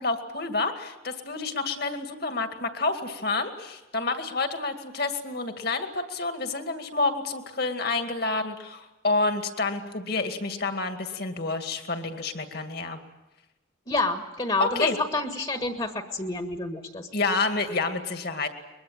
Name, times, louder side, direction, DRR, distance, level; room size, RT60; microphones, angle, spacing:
voice 1, 0.0-13.0 14.6-15.0 17.1-18.5, left 3 dB, 50° left, 6 dB, 2.3 m, -29 dB
voice 2, 13.9-17.1, left 2 dB, 25° left, 6 dB, 1.6 m, -28 dB
23.0 x 22.0 x 9.1 m, 1.0 s
head